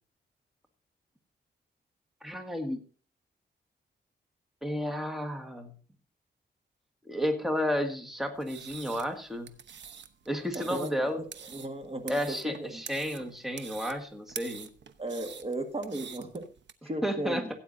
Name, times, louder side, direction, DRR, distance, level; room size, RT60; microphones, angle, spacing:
voice 1, 2.2-2.8 4.6-5.8 7.0-9.5 10.3-11.2 12.1-14.7 17.0-17.4, equal, ahead, 4 dB, 1.6 m, -32 dB
cutting vegetables, 8.4-16.7, right 7 dB, 70° right, 1.0 m, -46 dB
voice 2, 10.5-10.9 11.2-11.3 11.5-12.8 15.0-16.5 16.8-17.5, right 1 dB, 30° right, 6 dB, 1.7 m, -35 dB
16.5 x 9.1 x 2.7 m, 0.40 s
wide cardioid pair, 105°, 19 cm